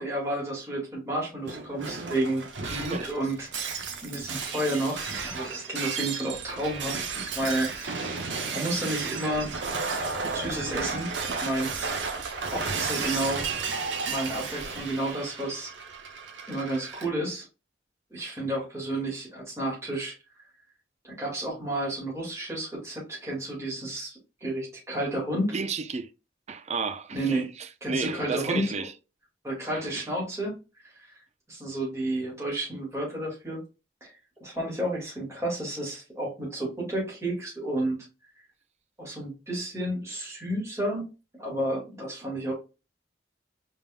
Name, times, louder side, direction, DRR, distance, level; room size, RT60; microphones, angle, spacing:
voice 1, 0.0-8.1 8.5-9.5 10.3-11.1 11.4-12.1 12.5-13.5 14.1-15.7 16.5-17.5 18.1-20.1 21.0-25.6 27.1-27.5 27.8-28.7 29.4-30.6 30.8-31.1 31.5-33.6 34.0-34.1 34.4-38.0 39.0-41.1 41.4-42.5, right 1 dB, 15° right, 2.4 m, -31 dB
Shatter, 1.5-17.1, right 5 dB, 80° right, 0.9 m, -33 dB
voice 2, 2.6-3.1 6.8-6.9 25.5-26.1 26.5-28.9 29.8-30.1, right 4 dB, 40° right, 0.5 m, -33 dB
5.0 x 3.7 x 2.4 m
head